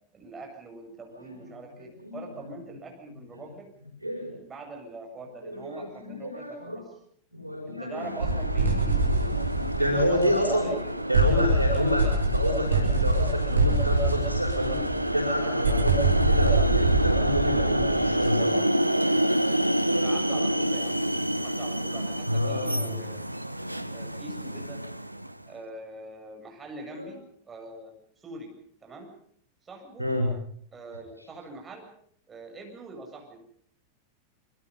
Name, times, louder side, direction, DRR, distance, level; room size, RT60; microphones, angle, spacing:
voice 1, 0.1-3.7 4.4-6.8 7.7-9.3 9.8-11.1 19.9-21.0 21.4-23.2 23.9-24.8 25.4-27.2 27.5-27.9 28.2-28.5 28.8-29.1 29.6-30.1 30.7-31.9 32.3-33.4, right 2 dB, 20° right, 2 dB, 7.8 m, -43 dB
voice 2, 1.8-2.3 4.0-4.4 5.4-6.8 7.3-8.1 9.2-10.7 11.1-14.8 15.1-18.6 22.2-23.0 26.9-27.1 30.0-30.3 31.2-31.3, equal, 90° left, 2 dB, 5.1 m, -29 dB
sound 1, 7.9-25.4, right 1 dB, 90° right, 0.9 m, -29 dB
sound 2, 8.2-10.8 11.1-18.3, right 2 dB, 70° right, 4.5 m, -25 dB
26.0 x 24.5 x 5.6 m, 0.65 s
figure-of-eight pair, 90°, 0 cm